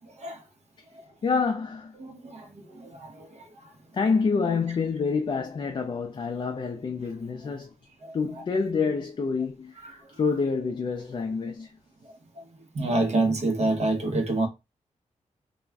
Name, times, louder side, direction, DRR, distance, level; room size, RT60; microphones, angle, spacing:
voice 1, 1.2-2.0 3.9-7.7 8.1-11.7, left 5 dB, 40° left, 0.4 m, -27 dB
voice 2, 2.0-3.5 8.0-8.4 9.8-10.0 12.4-12.5 12.7-14.5, right 2 dB, 60° right, 0.8 m, -28 dB
2.4 x 2.2 x 3.3 m
cardioid pair, 75°, 13 cm